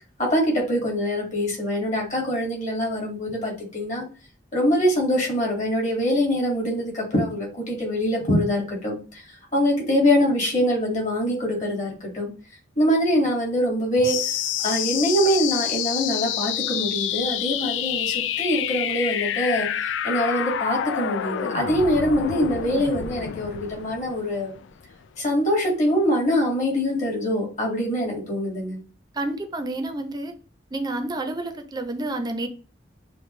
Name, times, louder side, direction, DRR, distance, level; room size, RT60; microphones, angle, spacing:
voice 1, 0.2-4.1 4.5-9.2 9.5-12.3 12.8-14.2 14.6-24.6 25.2-28.8, equal, 40° left, -1 dB, 2.0 m, -24 dB
sound 1, 14.0-25.1, left 10 dB, 80° left, 0.3 m, -28 dB
voice 2, 29.1-30.3 30.7-32.5, right 2 dB, 20° right, 6 dB, 0.6 m, -29 dB
6.8 x 2.3 x 3.1 m, 0.37 s
head